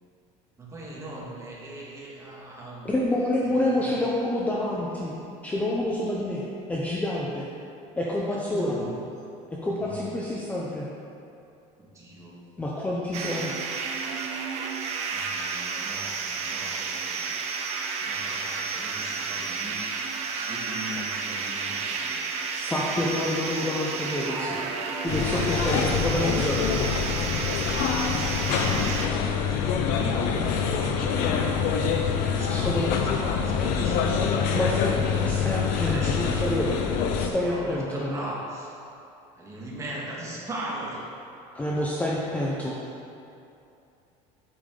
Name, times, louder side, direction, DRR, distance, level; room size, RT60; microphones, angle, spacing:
voice 1, 0.6-2.9 3.5-4.0 8.3-8.9 9.8-10.2 11.8-12.4 15.1-17.4 18.0-19.8 20.5-22.3 28.2-29.7 30.0-30.4 30.8-32.0 32.3-35.0 35.8-36.6 37.3-38.8 39.3-41.0, right 1 dB, 20° right, -5 dB, 1.7 m, -40 dB
voice 2, 2.8-5.1 5.4-6.4 6.7-7.4 8.0-8.8 9.5-10.9 12.6-13.6 20.3-20.5 22.5-24.7 25.0-26.9 32.5-32.9 34.5-36.7 37.2-38.2 41.5-42.8, left 1 dB, 10° left, -4 dB, 0.7 m, -28 dB
sound 1, 13.1-29.1, right 5 dB, 45° right, 0.8 m, -31 dB
sound 2, 25.1-37.3, left 6 dB, 60° left, 0.8 m, -25 dB
8.6 x 7.0 x 3.8 m, 2.7 s
cardioid pair, 150°, 16 cm